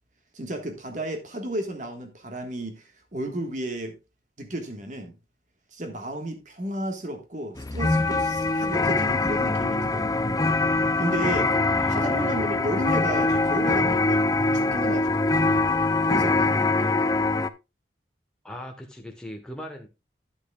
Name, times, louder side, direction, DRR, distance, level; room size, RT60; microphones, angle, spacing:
voice 1, 0.3-4.0 4.4-5.2 5.7-10.1 11.0-11.5 11.9-14.2 14.5-15.3 16.0-17.1, right 1 dB, 45° right, 1.5 m, -33 dB
sound 1, 7.6-17.5, left 3 dB, 20° left, 0.4 m, -23 dB
voice 2, 11.8-12.4 18.4-19.9, left 1 dB, 5° left, 1.1 m, -39 dB
12.0 x 8.4 x 2.3 m
head